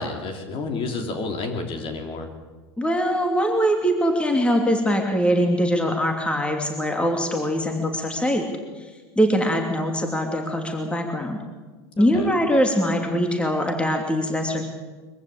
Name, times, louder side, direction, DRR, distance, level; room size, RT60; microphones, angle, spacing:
voice 1, 0.0-2.3 12.0-12.3, left 3 dB, 40° left, 4 dB, 3.6 m, -30 dB
voice 2, 2.8-8.4 8.8-8.9 9.2-11.4 12.0-14.6, equal, 10° left, 3 dB, 2.9 m, -22 dB
23.0 x 14.5 x 8.7 m, 1.3 s
hypercardioid pair, 110°, 14 cm